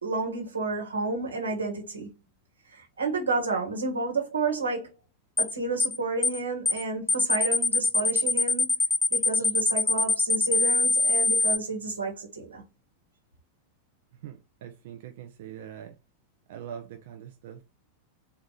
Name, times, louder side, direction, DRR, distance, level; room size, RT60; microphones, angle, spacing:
voice 1, 0.0-2.1 2.7-4.9 5.4-8.7 9.1-12.6, right 3 dB, 75° right, 1.3 m, -31 dB
sound 1, 5.4-5.5 5.8-6.0 6.2-6.4 6.7-6.8 7.1-11.6, left 2 dB, 5° left, 0.4 m, -23 dB
voice 2, 14.2-15.9 16.5-17.6, right 9 dB, 55° right, 0.5 m, -42 dB
4.1 x 2.4 x 3.7 m
figure-of-eight pair, 90°, 0 cm